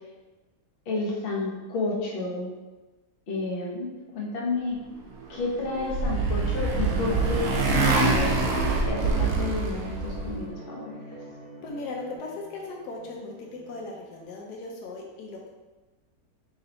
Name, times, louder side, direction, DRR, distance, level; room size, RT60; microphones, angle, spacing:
voice 1, 0.9-2.5 3.3-4.8 5.3-8.4 8.9-11.2, left 3 dB, 45° left, -4 dB, 0.8 m, -31 dB
Motorcycle, 5.4-10.4, right 3 dB, 85° right, 0.6 m, -25 dB
sound 1, 6.8-14.2, equal, 60° right, 1.2 m, -42 dB
voice 2, 11.6-15.5, left 3 dB, 75° left, -1 dB, 1.1 m, -38 dB
3.2 x 2.9 x 3.9 m, 1.1 s
omnidirectional pair, 1.8 m